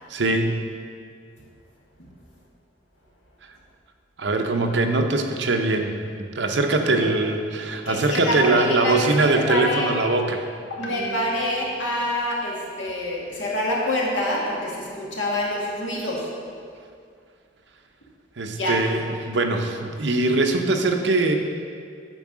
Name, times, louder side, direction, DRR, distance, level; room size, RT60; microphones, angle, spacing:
voice 1, 0.1-0.5 4.2-6.0 6.4-10.4 18.4-21.4, right 2 dB, 65° right, 5 dB, 0.8 m, -22 dB
voice 2, 7.9-9.9 10.7-16.3 18.5-18.8, left 1 dB, 90° left, -3 dB, 1.9 m, -26 dB
9.2 x 4.7 x 6.1 m, 2.2 s
head